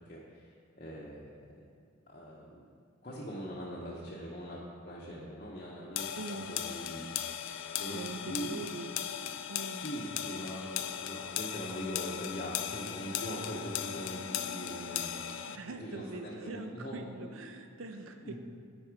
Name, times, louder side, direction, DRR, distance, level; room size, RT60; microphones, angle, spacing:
voice 1, 0.0-1.6 2.1-2.7 3.0-7.4 7.8-8.6 9.8-15.2 15.8-17.3 18.2-18.4, equal, 40° left, -5 dB, 0.7 m, -42 dB
sound 1, 6.0-15.6, left 10 dB, 70° left, 0.3 m, -38 dB
voice 2, 6.2-6.6 7.9-8.9 9.5-9.9 15.5-18.4, right 3 dB, 80° right, 6 dB, 0.6 m, -43 dB
9.9 x 4.2 x 4.6 m, 2.1 s
head